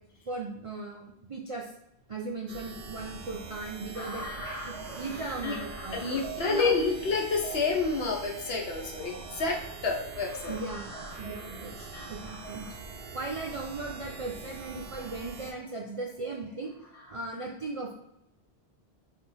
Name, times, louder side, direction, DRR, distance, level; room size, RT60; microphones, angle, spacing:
voice 1, 0.3-1.7 2.1-4.3 4.7-6.0 6.4-6.7 10.5-12.7 13.1-16.7 17.1-17.9, right 3 dB, 50° right, -1 dB, 0.4 m, -37 dB
sound 1, 2.5-15.5, right 4 dB, 70° right, 0.8 m, -44 dB
sound 2, 3.9-17.1, right 1 dB, 35° left, 1.3 m, -45 dB
voice 2, 5.9-9.6 9.8-10.6, left 4 dB, 65° left, 0 dB, 1.1 m, -29 dB
4.1 x 2.6 x 3.8 m, 0.80 s
omnidirectional pair, 1.1 m